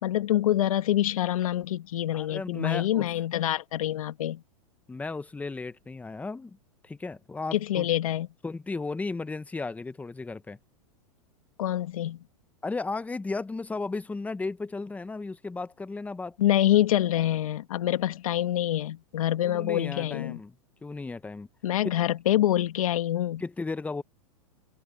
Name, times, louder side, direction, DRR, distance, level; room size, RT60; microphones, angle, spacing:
voice 1, 0.0-4.4 7.5-8.3 11.6-12.2 16.4-20.4 21.6-23.4, left 12 dB, 80° left, 2.1 m, -26 dB
voice 2, 2.1-3.1 4.9-6.6 6.8-7.9 8.4-10.6 12.6-16.4 19.4-20.5 20.8-21.5 23.4-24.0, left 3 dB, 10° left, 1.0 m, -35 dB
hypercardioid pair, 125°, 18 cm